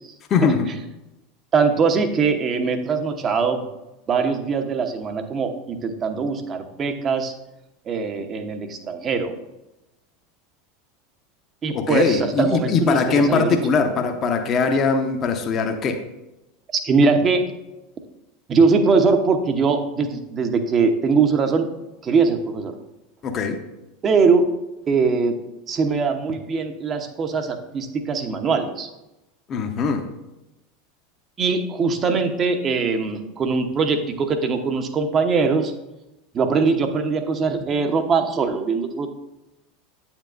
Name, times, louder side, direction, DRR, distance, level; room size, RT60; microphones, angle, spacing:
voice 1, 0.3-0.7 11.7-16.0 23.2-23.6 29.5-30.1, left 4 dB, 35° left, 5 dB, 0.9 m, -21 dB
voice 2, 1.5-3.6 4.1-7.3 7.9-9.3 11.6-13.6 16.7-17.5 18.5-21.7 22.0-22.7 24.0-24.4 24.9-25.4 25.7-28.9 31.4-35.7 36.3-39.1, right 4 dB, 30° right, 7 dB, 0.9 m, -21 dB
9.0 x 7.3 x 2.6 m, 0.95 s
figure-of-eight pair, 80°, 0 cm